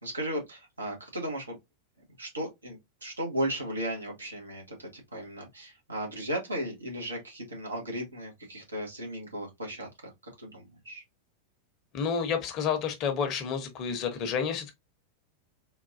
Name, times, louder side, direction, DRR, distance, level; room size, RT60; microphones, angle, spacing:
voice 1, 0.0-1.6 2.2-10.1 10.4-11.0, right 1 dB, 80° right, 1.3 m, -36 dB
voice 2, 11.9-14.7, left 6 dB, 40° left, 0.9 m, -30 dB
3.7 x 2.6 x 2.5 m
figure-of-eight pair, 90°, 0 cm